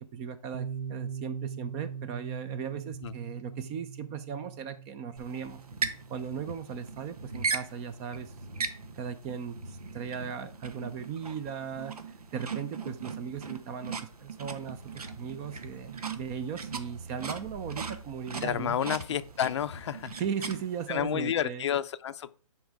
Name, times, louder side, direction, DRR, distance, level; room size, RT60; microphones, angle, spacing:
voice 1, 0.0-5.6 6.1-8.3 9.0-18.8 20.2-21.7, right 7 dB, 20° right, 0.6 m, -37 dB
Piano, 0.5-8.0, right 7 dB, 70° right, 0.6 m, -41 dB
sound 1, 5.2-21.0, right 5 dB, 90° right, 1.3 m, -39 dB
sound 2, 14.6-19.9, right 4 dB, 55° right, 1.7 m, -49 dB
voice 2, 18.4-20.1 20.9-22.3, left 9 dB, 50° left, 0.5 m, -30 dB
10.5 x 4.2 x 4.7 m
hypercardioid pair, 150°, 19 cm